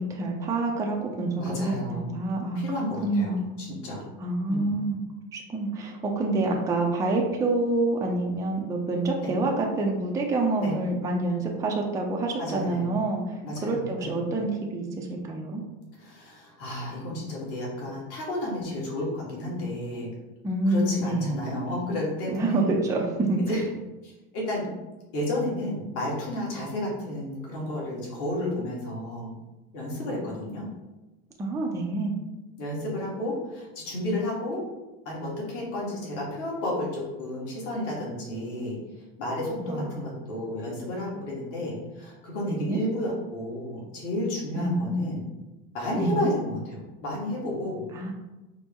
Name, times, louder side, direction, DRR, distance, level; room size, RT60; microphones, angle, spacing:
voice 1, 0.0-2.6 3.0-3.6 4.2-5.0 5.3-15.6 20.4-21.4 22.3-23.4 31.4-32.2 39.6-39.9 42.4-42.8 44.5-45.0 46.0-46.3 48.0-48.1, right 2 dB, 10° right, 0 dB, 0.4 m, -27 dB
voice 2, 1.4-2.2 2.5-4.1 4.5-4.8 9.2-9.3 10.6-10.7 12.4-12.8 13.4-14.2 16.0-20.1 20.7-22.7 23.4-23.6 24.0-24.7 25.1-29.4 29.7-30.7 32.6-34.7 35.0-38.8 39.2-45.2 45.7-47.8, left 1 dB, 50° left, -4 dB, 1.4 m, -32 dB
4.4 x 2.1 x 3.5 m, 1.1 s
supercardioid pair, 125°, 30 cm